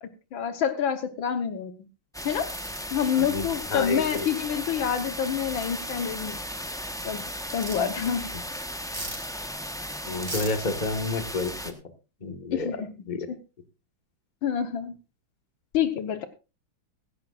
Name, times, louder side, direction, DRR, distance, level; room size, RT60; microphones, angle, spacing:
voice 1, 0.0-1.7 2.2-2.5 2.9-6.4 7.0-7.2 7.5-8.3 12.5-12.9 14.4-14.9 15.7-16.3, left 8 dB, 75° left, 9 dB, 1.8 m, -27 dB
sound 1, 2.1-11.7, equal, 5° left, 0.5 m, -36 dB
sound 2, 2.5-2.8 4.0-4.3 5.6-5.7 7.6-7.8 8.9-9.2 10.3-10.5, right 2 dB, 30° right, 5.1 m, -36 dB
voice 2, 3.2-4.3 10.0-11.7 12.2-12.7 13.1-13.3, left 3 dB, 25° left, 7 dB, 1.5 m, -30 dB
17.0 x 15.0 x 2.5 m, 0.29 s
omnidirectional pair, 2.2 m